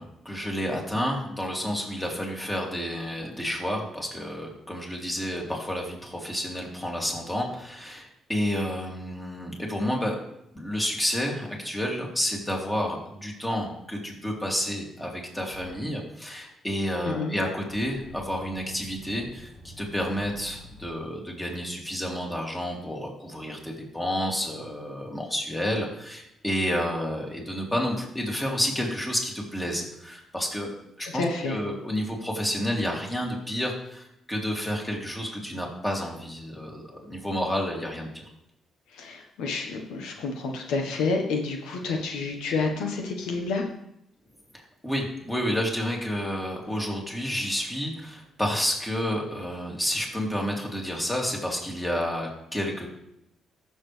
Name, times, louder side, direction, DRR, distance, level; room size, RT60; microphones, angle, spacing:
voice 1, 0.0-10.2 10.5-30.7 31.0-38.2 44.5-52.9, equal, 10° left, -1 dB, 2.8 m, -30 dB
sound 1, 15.5-15.7 17.7-21.0, equal, 40° left, 1.3 m, -47 dB
voice 2, 17.0-17.4 31.0-31.6 38.9-43.6, left 4 dB, 90° left, 3 dB, 1.2 m, -29 dB
14.5 x 7.0 x 3.4 m, 0.81 s
cardioid pair, 90°, 0 cm